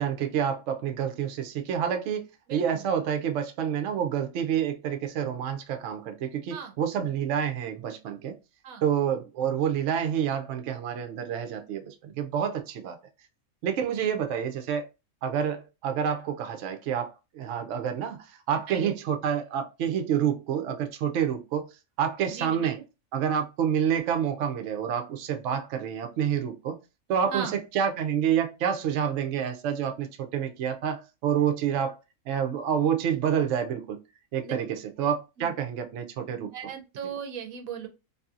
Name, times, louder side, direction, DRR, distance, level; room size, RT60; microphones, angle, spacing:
voice 1, 0.0-2.2 2.5-8.3 8.8-13.0 13.6-14.8 15.2-21.7 22.0-22.8 23.1-26.8 27.1-32.0 32.3-34.0 34.3-36.5, right 8 dB, 65° right, 0.8 m, -28 dB
voice 2, 2.5-2.8 6.5-6.7 8.6-8.8 14.0-14.1 18.7-18.9 22.3-22.8 27.3-27.6 34.4-34.5 35.4-35.6 36.4-37.9, right 7 dB, 85° right, 1.1 m, -37 dB
2.7 x 2.6 x 2.4 m
omnidirectional pair, 1.5 m